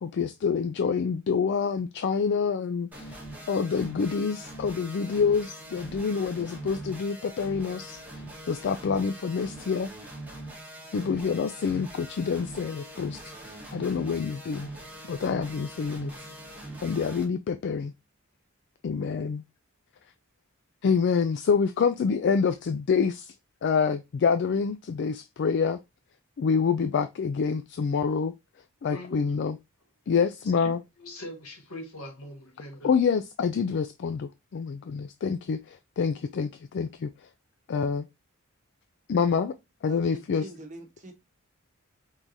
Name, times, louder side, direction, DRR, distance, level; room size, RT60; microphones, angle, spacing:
voice 1, 0.0-3.2 3.5-8.0 8.5-9.9 10.9-14.7 15.1-16.3 16.8-17.9 18.8-19.4 20.8-23.3 23.6-25.8 26.4-28.3 28.8-29.6 30.1-30.8 32.8-37.1 37.7-38.1 39.1-39.6 39.8-40.4, left 5 dB, 55° left, 0.3 m, -27 dB
sound 1, 2.9-17.2, right 1 dB, 10° right, 1.4 m, -42 dB
Drum, 16.0-17.7, equal, 15° left, 2.5 m, -53 dB
voice 2, 28.9-29.3 30.6-30.7 31.0-32.9, left 1 dB, 80° left, 1.8 m, -41 dB
voice 3, 39.9-41.1, right 1 dB, 35° right, 1.2 m, -44 dB
4.6 x 3.8 x 2.6 m
head